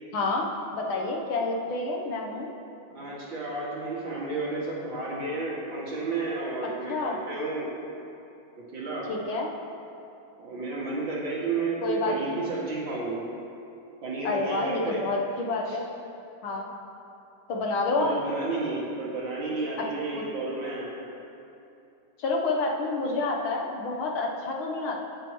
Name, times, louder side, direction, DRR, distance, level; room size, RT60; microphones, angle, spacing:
voice 1, 0.1-0.5 0.7-2.5 6.9-7.2 9.1-9.5 11.8-12.4 14.2-15.9 16.4-16.7 17.5-18.1 22.2-25.0, left 3 dB, 85° left, 0 dB, 1.9 m, -28 dB
voice 2, 2.9-7.7 8.7-9.1 10.4-13.2 14.0-15.0 15.7-15.8 17.9-20.9, right 3 dB, 70° right, -6 dB, 2.8 m, -32 dB
18.0 x 6.7 x 3.1 m, 2.8 s
omnidirectional pair, 2.2 m